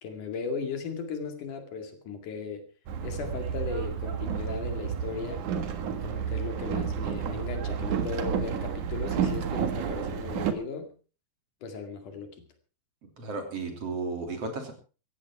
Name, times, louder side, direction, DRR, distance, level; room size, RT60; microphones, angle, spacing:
voice 1, 0.0-2.7 3.0-5.4 6.0-10.9 11.6-12.3, left 5 dB, 65° left, 7 dB, 3.7 m, -36 dB
Boat Water vehicle, 2.9-10.5, right 7 dB, 65° right, 3.0 m, -31 dB
voice 2, 13.0-14.7, right 3 dB, 45° right, 5 dB, 4.0 m, -34 dB
17.0 x 14.5 x 4.7 m, 0.36 s
omnidirectional pair, 3.9 m